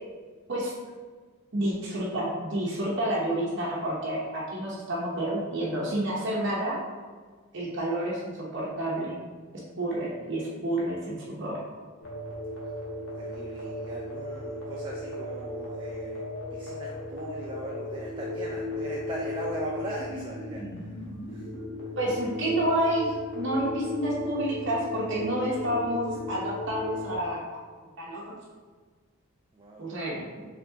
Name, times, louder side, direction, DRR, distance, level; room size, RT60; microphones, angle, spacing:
voice 1, 1.5-6.8 7.5-9.2 9.8-11.6 21.9-27.4 28.0-28.4 29.8-30.4, right 1 dB, 55° right, -6 dB, 0.8 m, -29 dB
sound 1, 12.0-27.2, left 2 dB, 60° left, 1.2 m, -36 dB
voice 2, 13.2-16.2 16.5-20.6 21.3-21.5 25.4-25.5 29.5-29.9, right 1 dB, 20° right, -3 dB, 0.4 m, -39 dB
4.7 x 3.4 x 2.8 m, 1.5 s
head